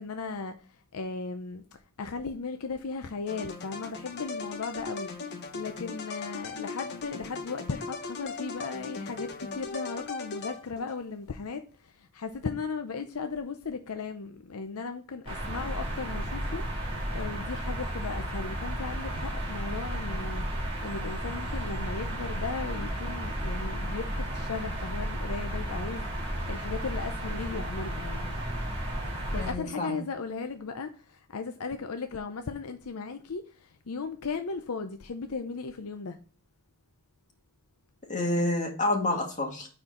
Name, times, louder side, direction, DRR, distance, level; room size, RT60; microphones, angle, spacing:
voice 1, 0.0-1.6 2.0-26.1 26.5-28.4 29.3-36.2, left 4 dB, 75° left, 0.6 m, -37 dB
sound 1, 3.3-11.0, left 4 dB, 50° left, 1.1 m, -38 dB
sound 2, 15.3-29.5, equal, 25° right, 2.8 m, -33 dB
voice 2, 29.4-30.0 38.1-39.7, left 2 dB, 35° left, 2.1 m, -28 dB
9.8 x 4.4 x 3.8 m
head